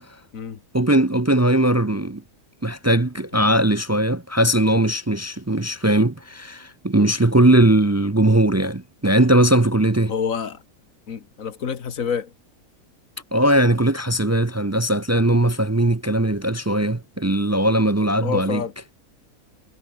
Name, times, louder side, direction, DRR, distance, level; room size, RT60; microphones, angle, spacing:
voice 1, 0.7-2.2 2.6-10.1 13.3-18.6, right 1 dB, 25° right, 0.3 m, -19 dB
voice 2, 10.1-10.6 11.1-12.3 18.2-18.7, left 6 dB, 65° left, 1.8 m, -27 dB
omnidirectional pair, 1.5 m